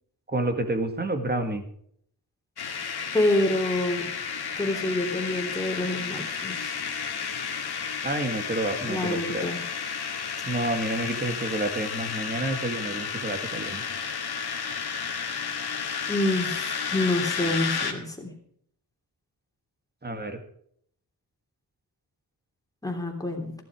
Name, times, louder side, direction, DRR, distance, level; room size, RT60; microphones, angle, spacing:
voice 1, 0.3-1.6 8.0-9.5 10.4-13.8 20.0-20.4, right 2 dB, 25° right, 7 dB, 2.0 m, -29 dB
sound 1, 2.6-17.9, left 6 dB, 65° left, 2.0 m, -32 dB
voice 2, 3.1-4.1 4.6-6.8 8.8-9.6 16.1-18.3 22.8-23.5, left 1 dB, 10° left, 1 dB, 3.2 m, -27 dB
15.0 x 12.0 x 4.9 m, 0.64 s
wide cardioid pair, 125°, 41 cm